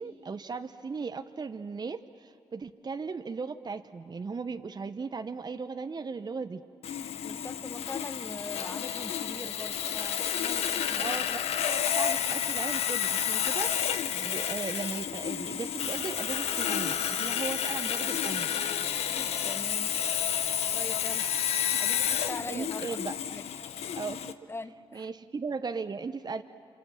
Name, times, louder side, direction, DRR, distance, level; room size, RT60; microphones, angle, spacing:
voice 1, 0.0-6.6 11.0-18.5 22.5-23.1 23.9-24.3 24.9-26.4, right 4 dB, 40° right, 8 dB, 0.9 m, -37 dB
Sawing, 6.8-24.3, left 9 dB, 75° left, 0.9 m, -30 dB
voice 2, 7.2-11.0 19.4-19.9 20.7-21.3 21.8-23.0 23.3-23.7 24.5-25.1, left 2 dB, 20° left, 11 dB, 1.3 m, -42 dB
27.5 x 26.5 x 7.4 m, 2.4 s
supercardioid pair, 45°, 11 cm